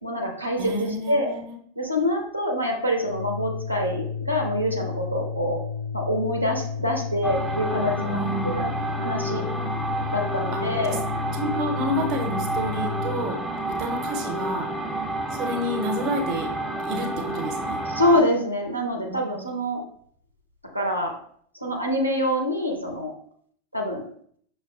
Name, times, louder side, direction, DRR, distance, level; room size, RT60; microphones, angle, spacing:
voice 1, 0.0-1.3 1.8-5.6 5.9-8.2 8.6-8.7 8.9-9.4 10.1-11.0 17.9-19.8 20.7-21.2 21.6-23.1 23.7-24.0, left 1 dB, 90° right, 0 dB, 0.6 m, -25 dB
voice 2, 0.6-1.5 7.7-8.8 10.5-10.6 10.9-11.0 11.3-13.4 13.7-14.7 15.3-16.5 16.8-17.9 19.1-19.4, right 1 dB, 35° right, 3 dB, 0.7 m, -29 dB
Organ, 3.0-13.3, left 6 dB, 70° left, 0.3 m, -32 dB
sound 1, 7.2-18.2, right 1 dB, ahead, 0.4 m, -30 dB
5.7 x 2.2 x 2.4 m, 0.62 s
figure-of-eight pair, 90°, 0 cm